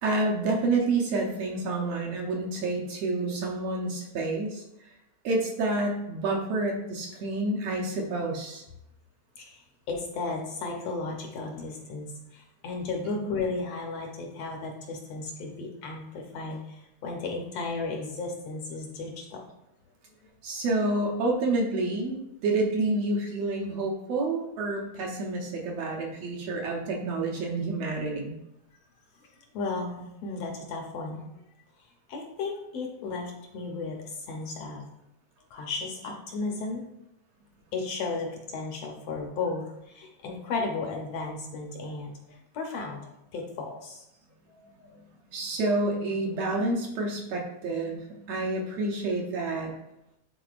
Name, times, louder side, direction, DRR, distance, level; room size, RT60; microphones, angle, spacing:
voice 1, 0.0-4.6 5.2-8.6 20.4-22.2 22.4-28.4 45.3-49.7, right 2 dB, 70° right, -1 dB, 1.9 m, -28 dB
voice 2, 9.4-19.4 29.5-31.3 32.1-34.9 35.5-36.9 37.7-43.0 43.3-44.1 44.5-45.0, left 3 dB, 70° left, 1 dB, 1.7 m, -34 dB
10.0 x 4.1 x 2.4 m, 0.84 s
omnidirectional pair, 3.3 m